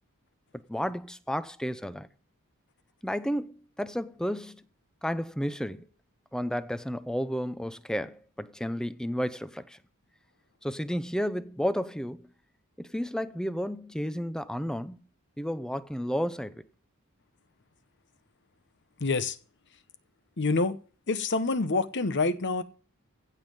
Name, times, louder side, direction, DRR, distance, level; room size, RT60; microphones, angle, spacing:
voice 1, 0.5-2.1 3.0-4.6 5.0-5.9 6.3-9.8 10.6-12.3 12.8-15.0 15.4-16.6, equal, 5° left, 0.6 m, -32 dB
voice 2, 19.0-19.4 20.4-20.8 21.1-22.6, left 3 dB, 55° left, 1.0 m, -26 dB
15.5 x 5.5 x 7.7 m
head